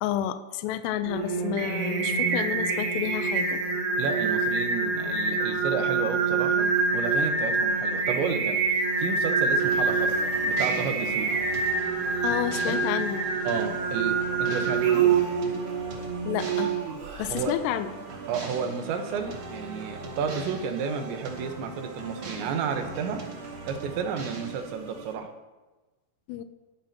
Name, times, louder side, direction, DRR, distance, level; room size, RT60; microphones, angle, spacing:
voice 1, 0.0-3.6 12.2-13.2 16.3-16.8 17.2-17.9 26.3-26.4, left 11 dB, 80° left, 9 dB, 2.7 m, -30 dB
sound 1, 1.1-8.9, right 1 dB, 40° left, 2.5 m, -40 dB
Singing, 1.1-17.3, right 4 dB, 65° right, 3.9 m, -26 dB
voice 2, 4.0-6.7 6.9-11.4 12.7-12.8 13.5-15.2 17.3-17.5 18.3-23.2 23.7-25.3, right 6 dB, 85° right, 5 dB, 3.5 m, -32 dB
sound 2, 9.6-25.1, right 3 dB, 40° right, 2.3 m, -40 dB
20.0 x 13.5 x 2.9 m, 1.2 s
omnidirectional pair, 5.0 m